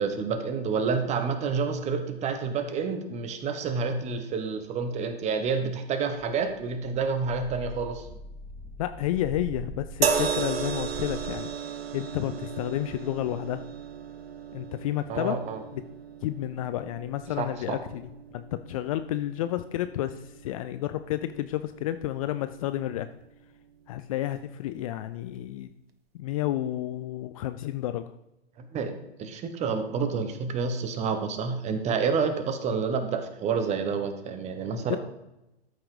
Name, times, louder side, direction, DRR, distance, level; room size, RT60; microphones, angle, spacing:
voice 1, 0.0-8.0 15.1-15.6 17.4-17.8 28.6-35.0, right 5 dB, 20° right, 8 dB, 1.2 m, -29 dB
sound 1, 7.1-11.5, right 3 dB, 5° right, 0.6 m, -43 dB
voice 2, 8.8-11.5 11.9-13.6 14.5-15.4 15.7-15.8 16.2-23.1 23.9-25.7 26.1-28.1 34.9-35.0, left 13 dB, 35° left, 11 dB, 0.5 m, -31 dB
sound 2, 10.0-23.3 24.3-24.5, right 7 dB, 70° right, 1.2 m, -35 dB
13.0 x 5.8 x 5.0 m, 0.91 s
hypercardioid pair, 120°, 31 cm